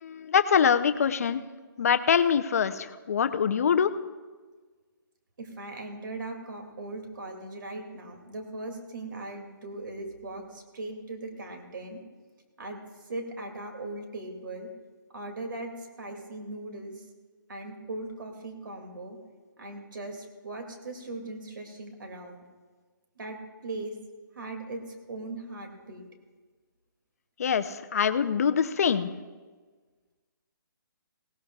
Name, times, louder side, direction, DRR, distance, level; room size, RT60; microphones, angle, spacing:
voice 1, 0.0-1.4 1.8-3.9 27.4-29.1, left 7 dB, 45° left, 11 dB, 0.6 m, -24 dB
voice 2, 5.4-12.0 12.6-14.7 15.1-17.1 17.5-19.2 19.6-22.4 23.2-23.4 23.6-23.9 24.3-26.0, right 2 dB, 65° right, 4 dB, 2.4 m, -39 dB
18.5 x 17.5 x 2.4 m, 1.4 s
hypercardioid pair, 170°, 12 cm